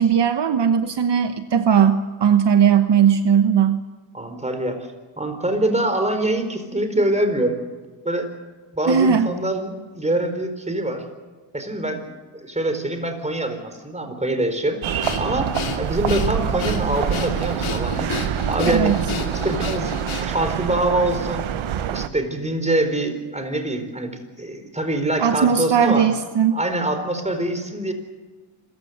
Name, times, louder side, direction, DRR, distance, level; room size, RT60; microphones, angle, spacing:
voice 1, 0.0-3.8 8.9-9.3 18.7-19.0 25.2-26.6, right 7 dB, 60° right, 9 dB, 1.2 m, -18 dB
voice 2, 4.1-4.8 5.2-7.6 8.0-8.3 8.7-11.0 11.5-15.5 15.8-18.1 18.5-18.9 19.2-19.9 20.2-21.5 21.9-26.1 26.5-27.9, right 1 dB, 15° right, 7 dB, 4.4 m, -24 dB
sound 1, 14.8-22.1, right 10 dB, 85° right, 1.1 m, -26 dB
Breathing, 15.0-20.5, left 7 dB, 85° left, 2.8 m, -31 dB
26.5 x 15.5 x 8.0 m, 1.3 s
cardioid pair, 75°, 47 cm